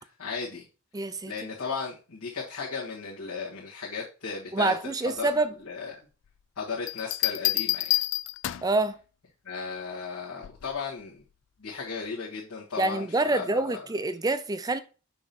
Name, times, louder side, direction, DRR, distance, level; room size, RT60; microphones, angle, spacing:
voice 1, 0.2-0.6 1.3-5.9 6.6-7.9 9.4-11.2 11.6-13.8, left 5 dB, 85° left, 1.7 m, -35 dB
voice 2, 0.9-1.3 4.5-5.5 8.6-9.0 12.8-14.8, right 2 dB, 15° right, 0.4 m, -26 dB
Bell, 6.9-8.8 10.4-10.8, left 16 dB, 55° left, 0.3 m, -28 dB
6.2 x 3.0 x 5.3 m
head